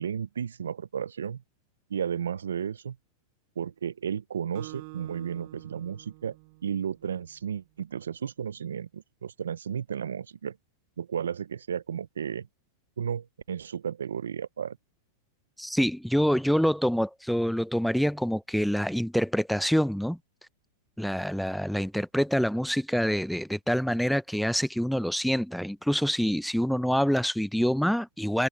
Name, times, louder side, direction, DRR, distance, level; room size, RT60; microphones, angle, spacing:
voice 1, 0.0-1.4 1.9-3.0 3.6-6.4 6.6-10.6 11.0-12.5 13.0-14.8, right 8 dB, 85° right, 0.5 m, -33 dB
Acoustic guitar, 4.5-7.3, right 32 dB, 50° right, 5.2 m, -47 dB
voice 2, 15.6-20.2 21.0-28.5, equal, ahead, 0.4 m, -26 dB
hypercardioid pair, 115°, 0 cm